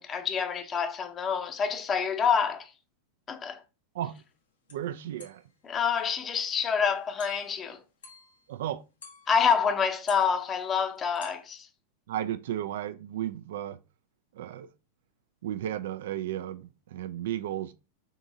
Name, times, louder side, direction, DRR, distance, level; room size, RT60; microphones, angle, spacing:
voice 1, 0.0-2.7 3.3-3.6 5.6-7.8 9.3-11.7, left 6 dB, 25° left, 0.7 m, -27 dB
sound 1, 4.2-4.3 4.7-4.9 5.2-5.5 6.0-6.1 6.5-6.7 7.2-7.6 8.0-8.5 9.0-9.8 10.0-11.4, left 4 dB, 80° left, 1.0 m, -50 dB
voice 2, 4.7-5.4 8.5-8.8 12.1-13.8 14.3-14.7 15.4-17.7, right 11 dB, 65° right, 0.4 m, -34 dB
3.7 x 3.7 x 2.6 m
hypercardioid pair, 95°, 0 cm